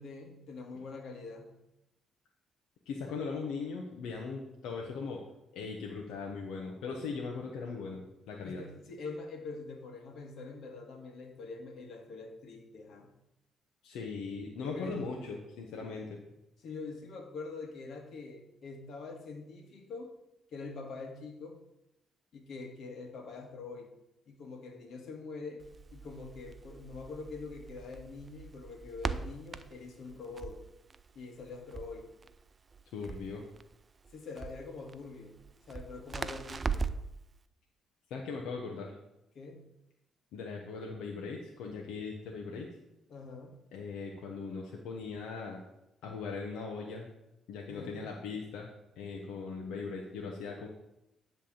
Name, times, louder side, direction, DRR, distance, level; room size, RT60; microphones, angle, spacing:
voice 1, 0.0-1.5 8.4-13.1 14.6-15.1 16.6-20.1 20.5-21.6 22.3-23.9 24.3-25.6 25.9-30.6 31.2-32.1 34.1-35.3 35.6-36.9 39.3-39.6 43.1-43.5 47.7-48.1, left 3 dB, 70° left, 3 dB, 1.7 m, -44 dB
voice 2, 2.9-5.2 5.5-8.6 13.8-16.2 32.9-33.4 38.1-39.0 40.3-42.7 43.7-45.6 46.0-47.1 47.5-48.7 49.0-50.7, left 4 dB, 90° left, 0 dB, 1.0 m, -39 dB
Crackle, 25.6-37.1, right 4 dB, 35° right, 0.5 m, -41 dB
10.5 x 3.5 x 7.0 m, 0.87 s
cardioid pair, 90°, 0 cm